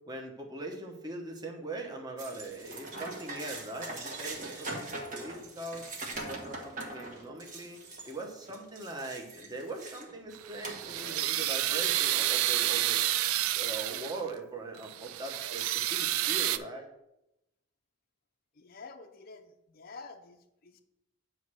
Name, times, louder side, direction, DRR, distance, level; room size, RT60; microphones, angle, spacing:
voice 1, 0.0-5.9 6.2-7.8 8.1-13.0 13.5-16.9, right 2 dB, 20° right, 1 dB, 1.0 m, -41 dB
sound 1, 2.2-10.1 10.6-11.6, right 2 dB, 35° right, 1.3 m, -42 dB
sound 2, 10.3-14.3 14.8-16.6, right 14 dB, 80° right, 0.4 m, -30 dB
voice 2, 18.6-20.8, left 4 dB, 45° left, 6 dB, 0.6 m, -49 dB
9.3 x 3.2 x 6.1 m, 0.87 s
head